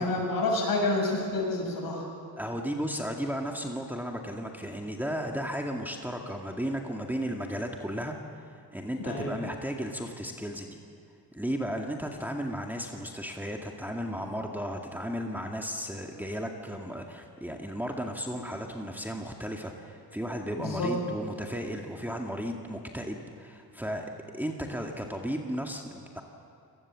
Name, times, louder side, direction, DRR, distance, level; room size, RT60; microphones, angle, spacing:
voice 1, 0.0-2.0 9.0-9.3 20.6-21.0, left 2 dB, 55° left, 1 dB, 7.3 m, -28 dB
voice 2, 2.4-8.2 8.7-10.8 11.3-26.2, equal, 5° right, 1 dB, 2.1 m, -34 dB
28.0 x 19.5 x 7.5 m, 2.5 s
cardioid pair, 85°, 41 cm